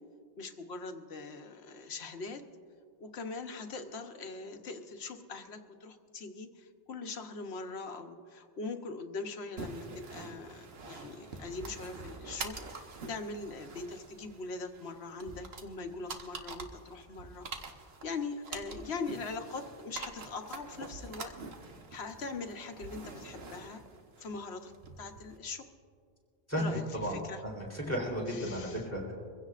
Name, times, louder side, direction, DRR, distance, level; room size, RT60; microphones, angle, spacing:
voice 1, 0.4-2.4 3.0-17.5 18.0-21.3 21.9-23.8 24.2-24.7 25.0-25.7 26.6-27.4 27.9-28.0 28.3-28.8, left 3 dB, 90° left, 6 dB, 1.2 m, -41 dB
sound 1, 9.6-25.4, right 3 dB, 75° right, 1.4 m, -46 dB
voice 2, 26.5-27.2 27.4-29.1, equal, 15° left, -3 dB, 3.7 m, -34 dB
24.0 x 16.0 x 2.5 m, 2.2 s
omnidirectional pair, 1.1 m